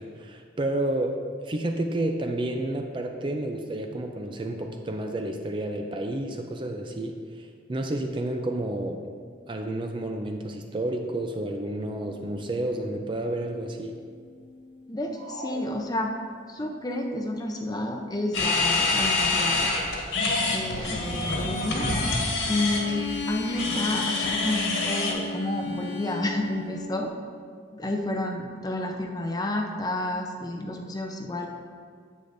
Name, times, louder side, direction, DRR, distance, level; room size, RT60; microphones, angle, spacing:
voice 1, 0.0-9.0 9.5-13.9, right 1 dB, 25° right, 4 dB, 0.4 m, -30 dB
sound 1, 12.0-15.2 16.6-19.0 22.5-27.1, left 5 dB, 60° left, 0.8 m, -39 dB
voice 2, 14.9-16.1 16.5-19.7 20.4-21.9 22.5-27.1 27.8-31.5, left 1 dB, 20° left, 3 dB, 0.6 m, -30 dB
sound 2, 15.1-16.6, right 1 dB, 80° right, 1.1 m, -41 dB
sound 3, 18.3-25.1, left 3 dB, 75° left, 1.8 m, -26 dB
9.8 x 7.8 x 2.6 m, 2.1 s
head